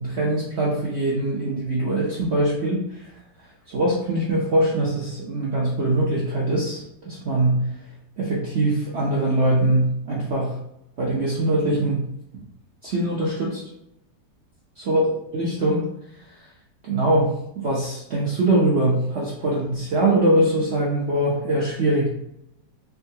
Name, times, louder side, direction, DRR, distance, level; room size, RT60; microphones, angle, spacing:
voice 1, 0.0-3.1 3.7-7.7 8.2-10.5 11.0-12.1 12.8-13.6 14.8-15.0 15.3-15.9 16.8-22.1, right 1 dB, 65° right, -5 dB, 0.6 m, -22 dB
3.6 x 2.3 x 2.7 m, 0.81 s
omnidirectional pair, 1.9 m